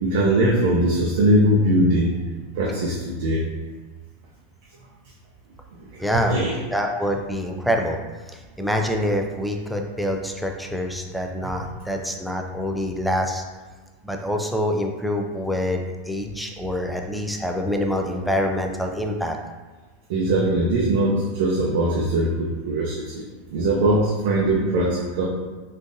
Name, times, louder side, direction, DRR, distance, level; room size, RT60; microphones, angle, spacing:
voice 1, 0.0-2.1 2.6-3.4 6.1-6.5 20.1-23.2 23.5-25.2, right 1 dB, 70° right, -3 dB, 0.5 m, -21 dB
voice 2, 6.0-6.4 6.7-8.0 8.3-13.4 14.0-19.4, equal, ahead, 2 dB, 0.3 m, -26 dB
3.7 x 2.4 x 2.6 m, 1.3 s
supercardioid pair, 135°, 0 cm